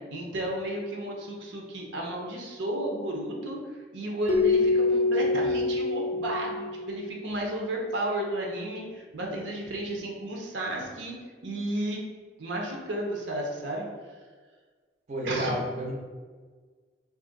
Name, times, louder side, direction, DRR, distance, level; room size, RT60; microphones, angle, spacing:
voice 1, 0.1-3.6 3.9-11.1 11.4-12.0 12.4-13.9 15.2-15.6, right 1 dB, 85° right, -1 dB, 0.6 m, -33 dB
Keyboard (musical), 4.3-7.1, left 3 dB, 35° left, 0.4 m, -25 dB
voice 2, 15.1-16.0, equal, 40° right, -2 dB, 0.5 m, -30 dB
2.7 x 2.4 x 3.8 m, 1.5 s
head